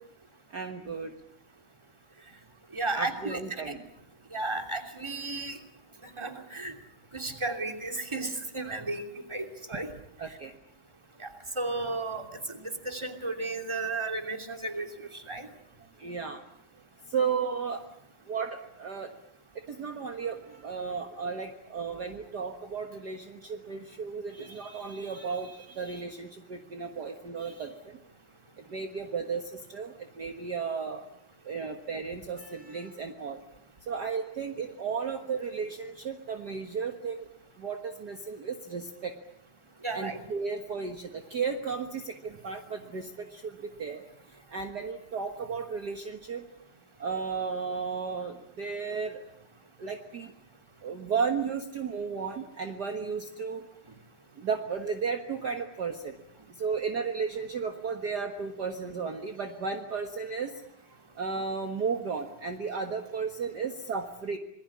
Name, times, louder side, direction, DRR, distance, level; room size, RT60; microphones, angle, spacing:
voice 1, 0.5-1.1 2.9-3.8 10.2-10.5 16.0-16.4 17.1-17.9 18.2-19.1 19.5-28.0 28.6-31.1 31.4-33.4 33.9-37.3 37.6-39.1 39.9-46.4 47.0-49.2 49.8-50.3 50.8-53.7 54.3-56.2 56.5-64.4, right 5 dB, 50° right, 5 dB, 1.2 m, -34 dB
voice 2, 2.7-3.8 4.3-5.6 6.2-6.7 7.1-9.9 11.2-11.3 11.6-15.5 39.8-40.2, right 2 dB, 10° right, 4 dB, 2.4 m, -34 dB
26.5 x 21.0 x 8.6 m, 0.76 s
omnidirectional pair, 3.9 m